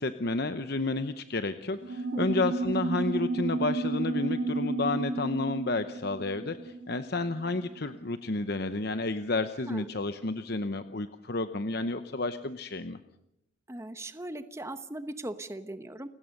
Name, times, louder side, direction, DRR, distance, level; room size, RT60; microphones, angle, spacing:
voice 1, 0.0-13.0, left 3 dB, 50° left, 10 dB, 0.9 m, -31 dB
sound 1, 1.8-7.7, right 3 dB, 60° right, 3.8 m, -32 dB
voice 2, 13.7-16.1, right 1 dB, 15° right, 10 dB, 1.0 m, -39 dB
29.5 x 16.5 x 6.6 m, 0.82 s
head